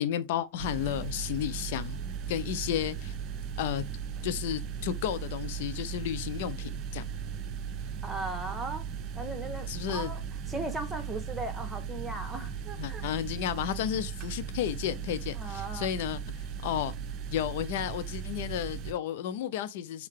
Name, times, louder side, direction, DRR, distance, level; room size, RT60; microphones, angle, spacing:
voice 1, 0.0-2.0 2.3-3.1 3.6-3.8 4.2-7.0 9.7-10.1 12.8-16.2 16.6-16.9 17.3-20.1, left 11 dB, 50° left, 0.7 m, -32 dB
sound 1, 0.6-18.9, right 7 dB, 35° right, 0.7 m, -37 dB
voice 2, 8.0-8.8 9.1-10.2 10.5-13.1 15.3-15.9, right 2 dB, 10° right, 1.4 m, -37 dB
6.4 x 4.3 x 3.6 m
figure-of-eight pair, 90°, 0 cm